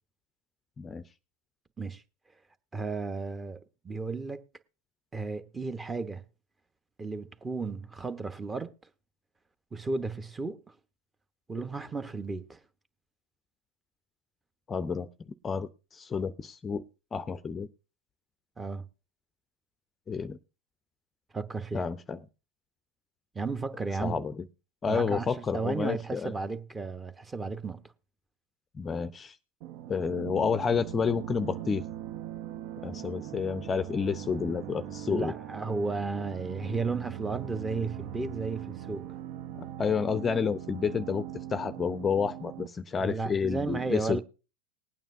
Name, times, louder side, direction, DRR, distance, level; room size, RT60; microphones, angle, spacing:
voice 1, 2.7-3.6 3.8-4.4 5.1-6.2 7.0-8.7 9.7-10.6 11.5-12.6 18.6-18.8 21.3-21.8 23.3-24.2 24.9-27.8 35.1-39.1 43.0-44.2, right 4 dB, 15° right, 1.0 m, -34 dB
voice 2, 14.7-16.8 17.1-17.7 20.1-20.4 21.7-22.2 24.0-24.5 24.8-26.3 28.7-29.4 29.9-31.8 32.8-35.3 39.6-44.2, left 6 dB, 25° left, 0.6 m, -30 dB
sound 1, 29.6-42.7, right 12 dB, 55° right, 0.8 m, -40 dB
20.0 x 9.0 x 2.6 m
hypercardioid pair, 95°, 0 cm